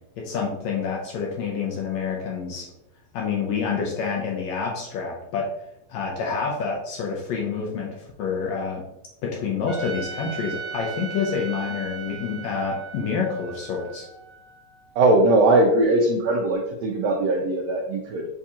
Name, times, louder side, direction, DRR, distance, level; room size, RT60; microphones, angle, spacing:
voice 1, 0.2-2.7 3.1-5.5 5.9-8.8 9.2-14.1, left 5 dB, 80° left, -1 dB, 1.7 m, -28 dB
Trumpet, 9.7-14.8, right 7 dB, 35° right, 0.4 m, -38 dB
voice 2, 15.0-18.3, right 2 dB, 80° right, -1 dB, 1.5 m, -20 dB
6.8 x 2.8 x 2.4 m, 0.86 s
omnidirectional pair, 3.6 m